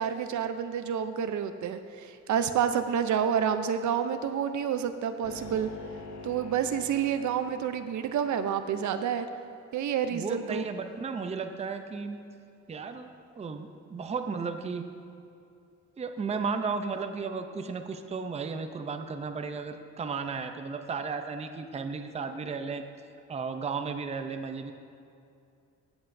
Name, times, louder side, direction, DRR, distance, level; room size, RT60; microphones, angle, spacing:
voice 1, 0.0-5.7 6.2-9.3 9.7-10.6, right 8 dB, 75° right, 9 dB, 0.6 m, -29 dB
sound 1, 5.2-8.7, left 4 dB, 60° left, 0.8 m, -46 dB
voice 2, 10.1-12.2 12.7-13.1 13.4-14.9 16.0-22.8 23.3-24.7, right 5 dB, 20° right, 7 dB, 0.4 m, -34 dB
16.0 x 7.9 x 2.6 m, 2.5 s
wide cardioid pair, 135°, 30 cm